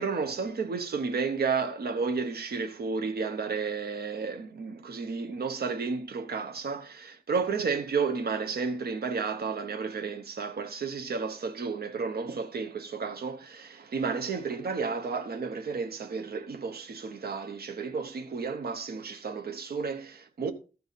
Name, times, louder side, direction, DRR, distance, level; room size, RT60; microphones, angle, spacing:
voice 1, 0.0-20.5, right 5 dB, 80° right, 1.0 m, -32 dB
13.5 x 5.6 x 4.1 m
wide cardioid pair, 165°, 16 cm